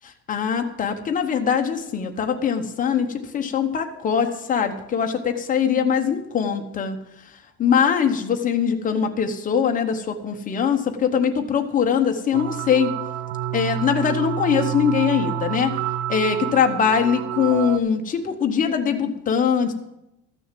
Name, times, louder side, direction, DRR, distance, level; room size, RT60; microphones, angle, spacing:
voice 1, 0.3-3.1 3.3-7.0 7.6-12.9 13.5-15.7 16.1-19.7, left 7 dB, 20° left, 5 dB, 0.9 m, -22 dB
sound 1, 12.3-17.8, right 11 dB, 70° right, 0.7 m, -28 dB
13.5 x 6.4 x 7.5 m, 0.86 s
cardioid pair, 175°, 36 cm